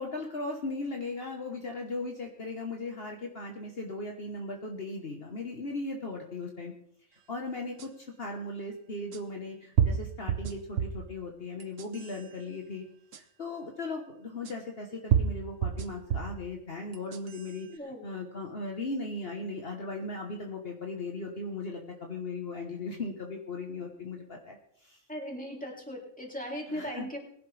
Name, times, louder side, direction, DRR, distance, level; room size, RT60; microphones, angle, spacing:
voice 1, 0.0-6.7 7.1-12.8 13.1-25.0 26.7-27.1, left 2 dB, 50° left, 1 dB, 1.5 m, -38 dB
sound 1, 7.8-7.9 9.1-9.2 9.8-11.1 11.6-12.2 13.1-13.2 14.5-14.6 15.1-16.4 16.9-17.5, right 9 dB, 80° right, 1.2 m, -28 dB
voice 2, 17.7-18.0 25.1-27.2, equal, 5° left, -1 dB, 3.2 m, -38 dB
21.0 x 11.0 x 3.4 m, 0.69 s
omnidirectional pair, 1.3 m